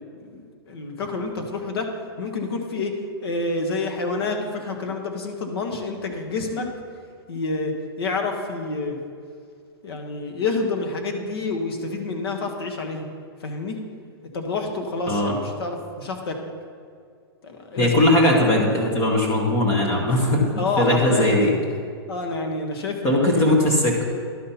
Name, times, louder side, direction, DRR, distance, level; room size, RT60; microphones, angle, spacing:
voice 1, 0.2-1.9 2.2-2.9 3.2-6.7 7.3-9.0 9.8-13.1 13.4-13.8 14.3-16.3 17.4-18.0 20.6-21.5 22.1-23.5, left 3 dB, 65° left, 4 dB, 1.3 m, -28 dB
voice 2, 17.8-20.5 20.8-21.5 23.0-24.1, left 1 dB, 20° left, -1 dB, 1.0 m, -19 dB
11.5 x 4.2 x 5.6 m, 2.2 s
hypercardioid pair, 170°, 13 cm